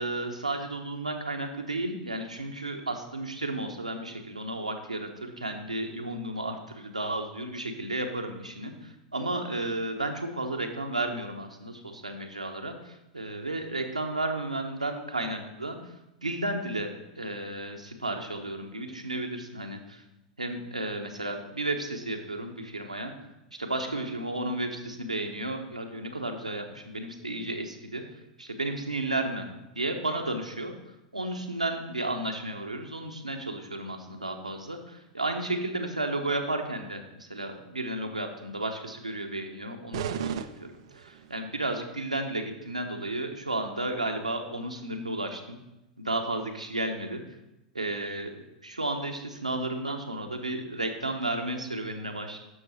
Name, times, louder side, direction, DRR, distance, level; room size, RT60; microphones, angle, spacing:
voice 1, 0.0-15.8 16.2-20.0 20.4-23.1 23.6-28.0 28.4-29.5 29.7-30.7 31.1-40.7 40.9-45.6 46.0-47.2 47.7-52.4, right 2 dB, 85° right, 4 dB, 1.1 m, -33 dB
sound 1, 39.9-41.4, right 8 dB, 55° right, 0.5 m, -35 dB
11.5 x 6.8 x 4.4 m, 0.94 s
figure-of-eight pair, 90°, 4 cm